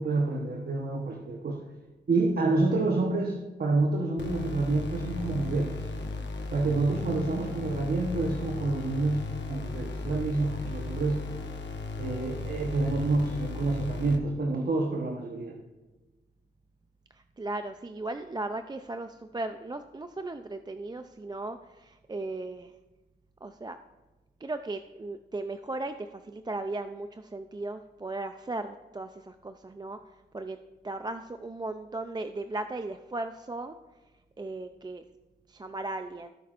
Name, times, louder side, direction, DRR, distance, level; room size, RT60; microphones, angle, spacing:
voice 1, 0.0-1.6 2.1-5.9 6.5-11.2 12.0-15.6, right 3 dB, 55° right, 2 dB, 1.0 m, -28 dB
sound 1, 4.2-14.2, left 3 dB, 75° left, 1.1 m, -36 dB
voice 2, 17.1-22.7 23.4-23.8 24.4-30.0 30.3-30.6 30.8-33.8 34.4-35.0 35.5-36.3, right 2 dB, 20° right, 8 dB, 0.4 m, -36 dB
17.0 x 5.8 x 2.5 m, 1.1 s
cardioid pair, 70°, 19 cm